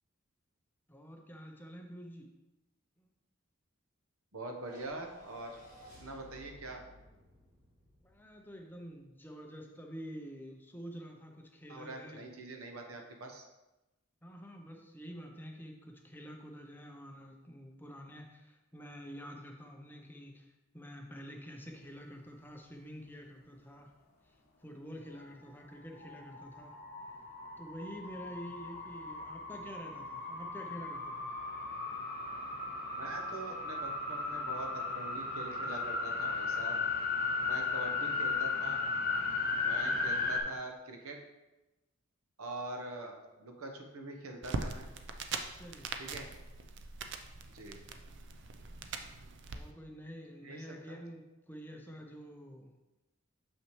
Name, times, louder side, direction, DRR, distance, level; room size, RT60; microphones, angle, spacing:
voice 1, 0.9-2.3 3.0-3.1 8.0-12.3 14.2-23.9 24.2-26.8 27.6-31.4 45.5-46.0 49.5-52.7, equal, 10° left, 2 dB, 0.5 m, -48 dB
voice 2, 4.3-5.6 6.0-6.8 11.7-13.4 33.0-36.8 37.5-38.8 39.6-41.2 42.4-44.9 46.0-46.3 47.5-47.8 50.4-51.0, right 2 dB, 90° right, 3 dB, 1.0 m, -44 dB
sound 1, 4.6-9.0, left 1 dB, 40° right, 2.2 m, -57 dB
sound 2, 25.9-40.4, left 4 dB, 45° left, 0.9 m, -36 dB
sound 3, 44.4-49.6, right 4 dB, 55° right, 0.5 m, -42 dB
6.4 x 5.8 x 3.1 m, 1.0 s
head